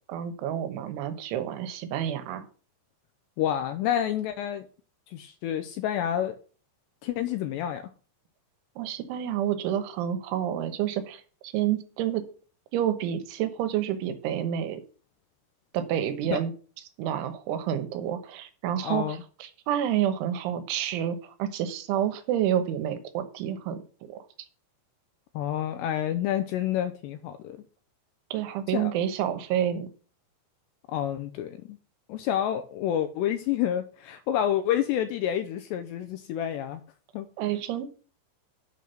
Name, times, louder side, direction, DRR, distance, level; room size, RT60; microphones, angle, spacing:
voice 1, 0.1-2.5 8.8-12.3 12.7-14.8 15.7-16.5 17.0-24.1 28.3-29.9 37.4-37.9, right 10 dB, 80° right, 10 dB, 3.5 m, -29 dB
voice 2, 3.4-4.7 5.1-6.4 7.0-7.9 16.3-16.4 18.8-19.2 25.4-27.6 28.7-28.9 30.9-31.8 32.1-36.8 37.1-37.3, left 10 dB, 85° left, 9 dB, 2.5 m, -28 dB
8.4 x 5.9 x 6.6 m, 0.39 s
omnidirectional pair, 5.5 m